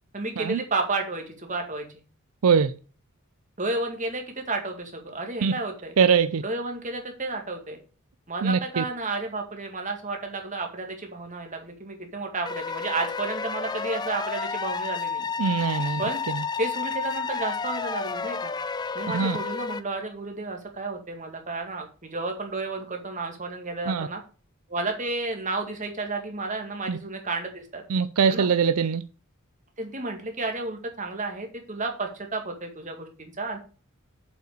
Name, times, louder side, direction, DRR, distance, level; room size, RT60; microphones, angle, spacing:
voice 1, 0.1-1.9 3.6-5.9 6.4-7.8 8.3-15.3 16.0-16.2 16.6-18.5 18.9-24.2 24.7-27.8 28.3-28.5 29.8-33.6, right 3 dB, 35° right, 2.0 m, -32 dB
voice 2, 2.4-2.8 5.4-5.5 6.0-6.4 8.4-8.8 15.4-16.0 16.3-16.4 19.1-19.4 23.9-24.1 26.9-27.0 27.9-29.0, right 6 dB, 75° right, 0.5 m, -22 dB
sound 1, 12.4-19.8, left 5 dB, 20° left, 0.3 m, -31 dB
7.7 x 5.6 x 6.6 m
head